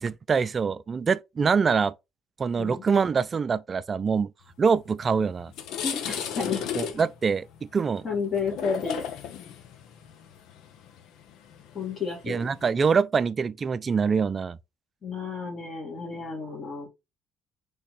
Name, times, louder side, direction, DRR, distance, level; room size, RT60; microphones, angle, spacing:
voice 1, 0.0-1.9 2.4-4.3 4.6-5.5 6.8-8.1 12.3-14.6, right 5 dB, 40° right, 0.3 m, -24 dB
sound 1, 4.9-5.0 5.4-12.7, left 8 dB, 70° left, 0.5 m, -35 dB
voice 2, 5.8-6.6 8.0-9.0 11.7-12.4 15.0-16.9, left 5 dB, 45° left, 1.7 m, -31 dB
3.2 x 3.1 x 3.1 m
hypercardioid pair, 65°, 0 cm